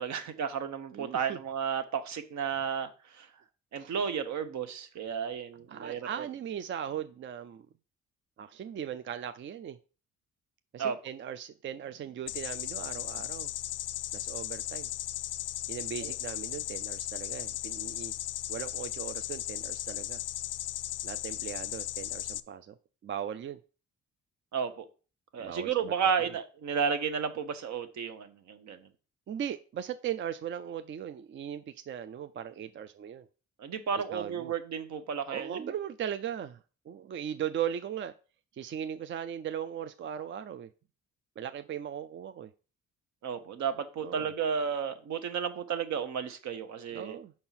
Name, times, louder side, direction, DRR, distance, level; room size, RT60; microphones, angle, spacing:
voice 1, 0.0-2.9 3.1-3.3 3.7-6.3 10.8-11.0 16.0-16.1 24.5-24.8 25.3-28.8 33.6-35.7 43.2-47.2, right 7 dB, 65° right, 9 dB, 0.9 m, -33 dB
voice 2, 0.9-1.4 3.7-3.9 5.7-7.7 8.4-9.8 10.7-13.5 14.1-14.9 15.7-18.1 18.5-20.2 21.0-22.8 23.0-23.6 25.4-25.9 26.2-26.3 29.3-33.3 34.1-34.5 35.3-36.6 36.9-38.1 38.5-40.7 41.4-42.5 44.0-44.3 46.9-47.3, right 9 dB, 40° right, 11 dB, 0.4 m, -38 dB
sound 1, 12.3-22.4, left 12 dB, 55° left, 0.4 m, -36 dB
5.4 x 4.4 x 5.7 m, 0.37 s
cardioid pair, 90°, 30 cm